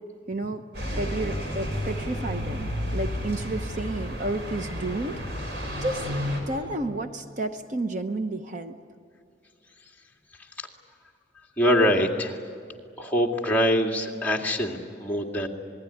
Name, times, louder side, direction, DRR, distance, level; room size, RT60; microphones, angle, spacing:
voice 1, 0.3-0.6 1.0-5.2 5.8-6.2 6.5-8.8, right 2 dB, 45° right, 7 dB, 0.9 m, -31 dB
sound 1, 0.7-6.4, equal, 70° right, 5.7 m, -31 dB
voice 2, 11.6-12.4 13.0-15.5, equal, 10° left, -1 dB, 2.2 m, -24 dB
27.0 x 20.5 x 9.9 m, 2.3 s
head